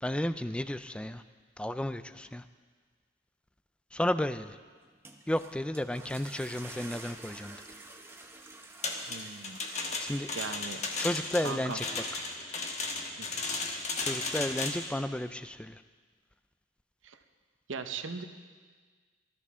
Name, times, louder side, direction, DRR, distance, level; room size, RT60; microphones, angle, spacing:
voice 1, 0.0-1.2 1.6-2.4 3.9-4.6 5.3-7.6 10.0-10.3 11.0-11.8 14.0-15.8, left 1 dB, 5° left, 12 dB, 0.3 m, -32 dB
sound 1, 4.8-10.9, right 2 dB, 10° right, 0.8 m, -49 dB
sound 2, 8.8-14.9, left 3 dB, 35° left, 1.4 m, -35 dB
voice 2, 9.1-9.6 9.9-10.1 10.3-10.8 11.4-11.8 13.2-13.3 17.0-17.2 17.7-18.2, right 4 dB, 85° right, 7 dB, 0.9 m, -38 dB
19.0 x 13.5 x 3.7 m, 1.5 s
head